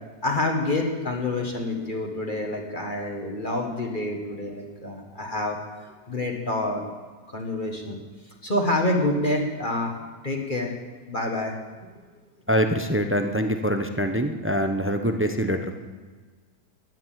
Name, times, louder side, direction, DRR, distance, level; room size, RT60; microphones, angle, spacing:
voice 1, 0.2-5.6 6.1-6.8 7.3-8.0 8.4-10.0 10.2-10.7 11.1-11.5, left 2 dB, 30° left, 1 dB, 1.8 m, -27 dB
voice 2, 12.5-15.7, equal, 15° right, 6 dB, 0.5 m, -24 dB
15.0 x 11.0 x 7.6 m, 1.4 s
omnidirectional pair, 1.7 m